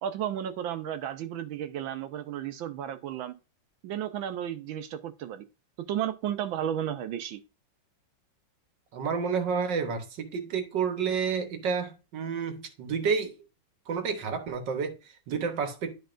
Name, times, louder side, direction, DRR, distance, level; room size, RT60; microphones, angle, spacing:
voice 1, 0.0-3.3 3.8-5.4 5.8-7.4, right 10 dB, 90° right, 1.6 m, -33 dB
voice 2, 8.9-13.3 13.9-15.9, right 6 dB, 70° right, 1.7 m, -30 dB
10.5 x 4.7 x 2.5 m
omnidirectional pair, 2.1 m